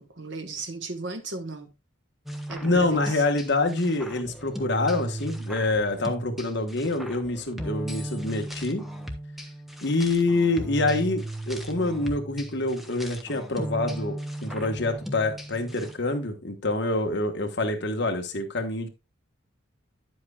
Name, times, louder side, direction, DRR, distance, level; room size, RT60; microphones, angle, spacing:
voice 1, 0.0-1.7 2.5-3.2, right 3 dB, 55° right, 1.2 m, -36 dB
sound 1, 2.3-16.0, right 1 dB, ahead, 0.7 m, -36 dB
voice 2, 2.6-8.8 9.8-18.9, left 2 dB, 55° left, 1.3 m, -26 dB
9.7 x 7.8 x 2.3 m
head